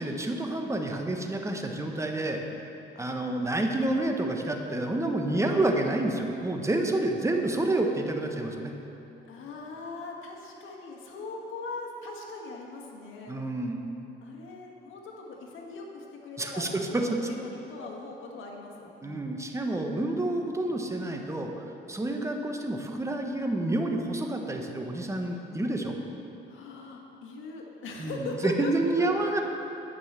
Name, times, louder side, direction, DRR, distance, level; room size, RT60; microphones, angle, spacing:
voice 1, 0.0-2.4 3.0-8.7 13.3-13.9 16.4-17.1 19.0-26.0 28.0-29.4, right 2 dB, 15° right, 3 dB, 1.0 m, -29 dB
voice 2, 2.9-3.6 9.3-13.4 14.2-16.8 17.2-19.3 21.9-22.2 26.5-29.1, left 3 dB, 80° left, 0 dB, 1.5 m, -40 dB
9.4 x 5.5 x 7.3 m, 2.9 s
cardioid pair, 90°, 20 cm